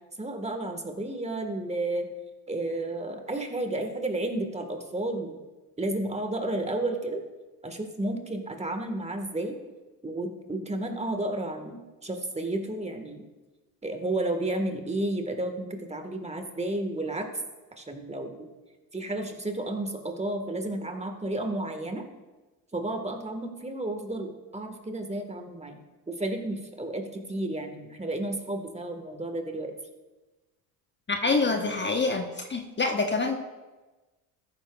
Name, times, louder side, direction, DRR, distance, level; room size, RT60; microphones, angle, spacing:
voice 1, 0.2-2.1 2.5-5.4 5.8-7.2 7.6-9.6 10.0-13.2 13.8-17.3 17.8-18.5 18.9-22.0 22.7-25.8 26.1-29.7, right 1 dB, 15° right, 5 dB, 1.6 m, -32 dB
voice 2, 31.1-32.2 32.5-33.4, left 3 dB, 25° left, 4 dB, 1.1 m, -26 dB
14.0 x 11.5 x 2.4 m, 1.2 s
hypercardioid pair, 70°, 47 cm